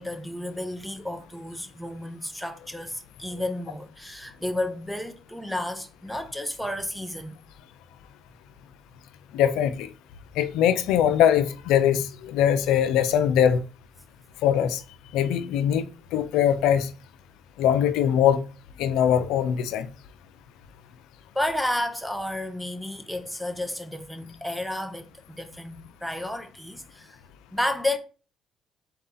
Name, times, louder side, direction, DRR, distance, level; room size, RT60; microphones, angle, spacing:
voice 1, 0.0-7.3 21.3-27.2 27.5-28.0, left 1 dB, ahead, 0.8 m, -32 dB
voice 2, 9.3-9.9 10.4-13.6 14.4-14.8 15.1-15.8 16.1-16.9 17.6-18.4 18.8-19.9, left 9 dB, 90° left, 0.4 m, -21 dB
4.0 x 2.7 x 3.8 m
supercardioid pair, 75°, 0 cm